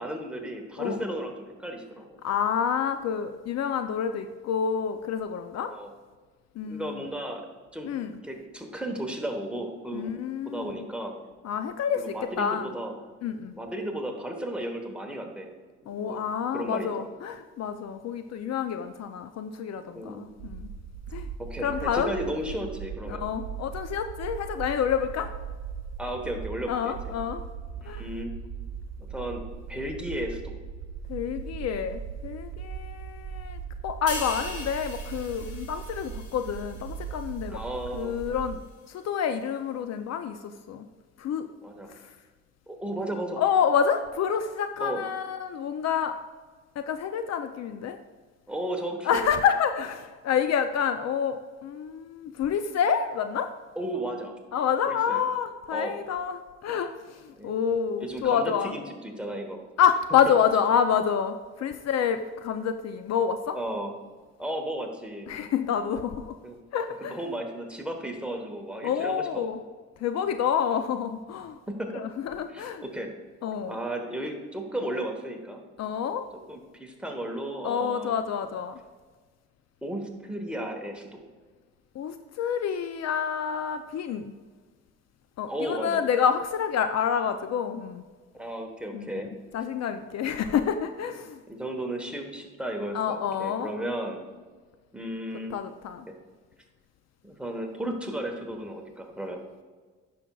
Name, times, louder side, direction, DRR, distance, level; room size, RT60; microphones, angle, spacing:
voice 1, 0.0-2.2 5.6-5.9 6.6-7.5 7.7-7.9 8.2-10.1 10.4-11.2 11.9-12.9 13.5-15.5 15.8-16.2 16.5-17.1 19.9-20.3 21.4-23.2 26.0-27.2 27.8-28.3 29.0-29.4 29.7-30.5 37.5-38.2 41.6-41.9 42.7-43.4 44.8-45.1 48.5-49.2 53.7-54.3 54.9-55.2 55.7-56.0 57.3-57.6 58.0-59.6 63.5-63.9 64.4-65.3 66.4-66.6 67.0-69.5 71.7-72.1 72.5-73.1 73.6-75.6 76.5-78.2 79.8-81.2 85.5-86.0 88.3-89.3 91.5-94.2 94.9-95.5 96.1-96.2 97.2-99.4, right 1 dB, 5° right, 2 dB, 1.1 m, -34 dB
voice 2, 2.2-5.7 6.6-7.0 7.9-8.2 9.9-10.9 11.4-12.7 13.2-13.5 15.9-20.7 21.1-21.3 21.6-22.1 23.1-25.3 26.7-27.4 27.8-28.0 31.1-37.6 37.9-38.6 38.9-40.4 40.7-40.9 41.2-41.5 41.9-42.0 43.4-46.1 46.8-48.0 49.0-53.5 54.5-58.7 59.8-63.6 65.3-66.2 66.7-67.2 68.8-69.6 70.0-71.6 71.9-72.8 73.4-73.8 75.8-76.3 77.6-78.8 82.0-84.3 85.4-88.0 88.9-89.1 89.5-91.4 92.9-93.7 95.5-96.0, left 7 dB, 60° left, 9 dB, 0.5 m, -28 dB
sound 1, 20.3-38.6, right 6 dB, 90° right, 0.6 m, -39 dB
sound 2, 34.1-37.6 38.0-38.2, left 3 dB, 85° left, 1.5 m, -40 dB
9.8 x 6.0 x 2.3 m, 1.4 s
cardioid pair, 90°, 30 cm